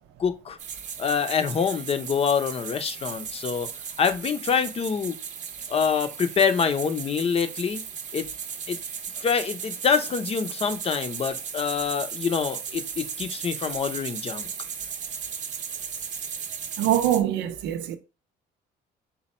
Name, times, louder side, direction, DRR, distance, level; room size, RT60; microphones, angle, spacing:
voice 1, 0.2-0.6 1.0-3.7 4.0-5.2 5.7-7.8 8.1-8.2 8.7-8.8 9.2-14.5, left 6 dB, 35° left, 0.6 m, -25 dB
sound 1, 0.6-17.2, right 7 dB, 45° right, 0.7 m, -36 dB
voice 2, 16.8-18.0, right 11 dB, 90° right, 0.6 m, -24 dB
4.1 x 2.2 x 4.2 m
cardioid pair, 110°, 17 cm